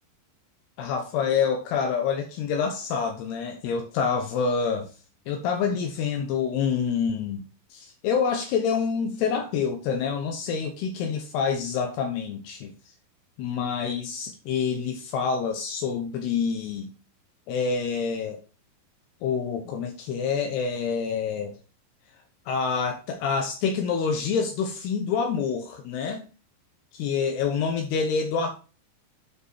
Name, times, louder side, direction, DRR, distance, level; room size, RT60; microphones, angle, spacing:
voice 1, 0.8-4.9 5.3-7.4 7.7-12.7 13.4-16.9 17.5-18.4 19.2-21.5 22.5-26.3 26.9-28.5, left 6 dB, 80° left, 3.0 m, -27 dB
8.9 x 5.3 x 4.8 m
omnidirectional pair, 4.8 m